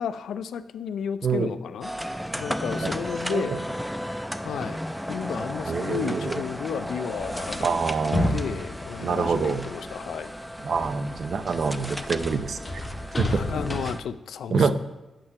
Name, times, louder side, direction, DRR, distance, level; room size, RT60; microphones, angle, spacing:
voice 1, 0.0-1.9 2.4-3.6 4.4-4.8 5.1-7.8 8.3-10.3 13.3-14.7, left 7 dB, 85° left, 13 dB, 0.4 m, -32 dB
sound 1, 1.8-14.0, equal, ahead, 0.6 m, -34 dB
voice 2, 5.7-6.4 7.6-8.4 9.0-9.7 10.6-12.8 13.2-13.6 14.5-14.7, right 5 dB, 60° right, 12 dB, 0.6 m, -26 dB
sound 2, 7.2-10.2 10.6-13.9, left 1 dB, 35° left, 1.3 m, -31 dB
8.6 x 5.7 x 6.6 m, 1.0 s
cardioid pair, 70°, 0 cm